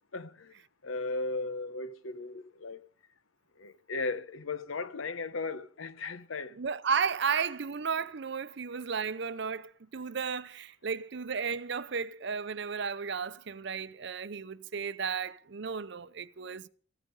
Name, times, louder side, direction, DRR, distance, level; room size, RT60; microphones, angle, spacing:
voice 1, 0.1-0.5 0.8-2.9 3.6-6.5, left 3 dB, 90° left, 1.0 m, -36 dB
voice 2, 6.5-16.7, right 6 dB, 60° right, 0.6 m, -34 dB
15.5 x 13.0 x 5.5 m
head